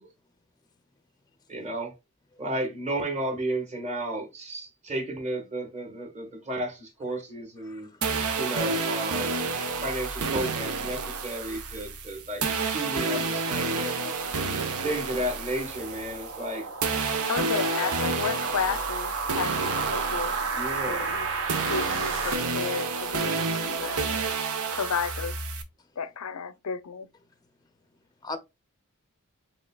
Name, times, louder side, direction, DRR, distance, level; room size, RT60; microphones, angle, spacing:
voice 1, 1.5-1.9 2.4-7.9 8.4-9.4 9.8-14.1 14.8-16.7 20.5-21.1, right 1 dB, 30° right, 1.4 m, -33 dB
sound 1, 8.0-16.5 16.8-25.6, right 4 dB, 85° right, 0.9 m, -30 dB
voice 2, 8.2-8.6 9.6-9.7 14.3-14.9 28.2-28.4, left 3 dB, 20° left, 0.5 m, -42 dB
sound 2, 13.9-22.3, right 4 dB, 60° right, 1.3 m, -33 dB
voice 3, 17.3-20.5 20.9-21.3 21.7-24.2 24.7-25.3 26.0-27.1, left 6 dB, 85° left, 0.6 m, -32 dB
5.2 x 3.6 x 2.3 m
head